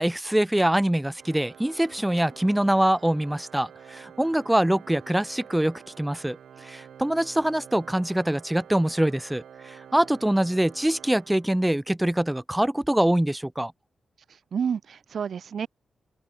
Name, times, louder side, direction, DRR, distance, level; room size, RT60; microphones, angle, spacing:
voice 1, 0.0-13.7, right 1 dB, 5° right, 0.6 m, -24 dB
Organ, 1.2-12.0, right 8 dB, 85° right, 2.7 m, -48 dB
voice 2, 14.3-15.7, right 7 dB, 60° right, 0.7 m, -30 dB
open air
wide cardioid pair, 130°, 0 cm